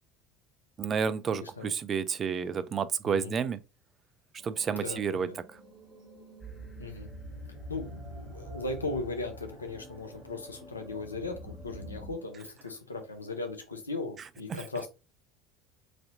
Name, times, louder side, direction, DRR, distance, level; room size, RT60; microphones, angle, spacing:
voice 1, 0.8-3.6 4.4-5.3 14.5-14.6, right 6 dB, 35° right, 0.4 m, -30 dB
voice 2, 1.3-1.7 3.0-3.3 4.7-5.3 6.8-7.1 7.7-14.9, left 3 dB, 90° left, 0.5 m, -38 dB
sound 1, 4.4-12.4, right 1 dB, 60° right, 1.8 m, -53 dB
sound 2, 6.4-12.1, equal, 15° left, 1.1 m, -45 dB
4.1 x 2.7 x 2.5 m
figure-of-eight pair, 65°, 0 cm